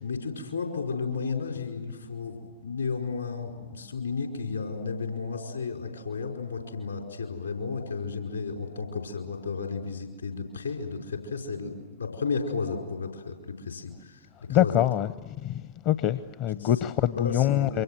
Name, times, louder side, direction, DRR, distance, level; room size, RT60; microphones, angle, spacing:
voice 1, 0.0-14.2 14.5-14.8 16.6-16.7 17.2-17.8, left 5 dB, 80° left, 2 dB, 4.7 m, -33 dB
voice 2, 14.5-15.1 15.4-15.5 15.9-17.8, left 12 dB, 40° left, 15 dB, 0.7 m, -24 dB
28.0 x 24.5 x 7.7 m, 1.4 s
figure-of-eight pair, 90°, 0 cm